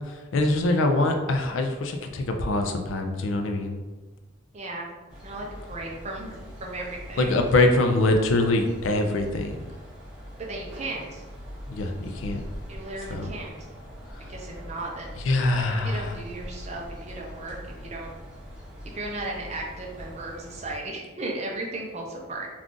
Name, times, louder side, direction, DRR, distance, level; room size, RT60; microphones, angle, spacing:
voice 1, 0.3-3.8 7.2-9.6 11.7-12.4 13.1-13.3 15.2-16.1, left 2 dB, 70° left, 5 dB, 0.4 m, -23 dB
voice 2, 4.5-4.9 5.2-7.4 10.4-11.2 12.7-13.6 14.3-15.2 15.6-18.1 18.9-22.5, right 2 dB, 35° right, -1 dB, 0.5 m, -36 dB
sound 1, 5.1-20.8, equal, 5° right, 0.8 m, -42 dB
2.4 x 2.4 x 3.7 m, 1.2 s
head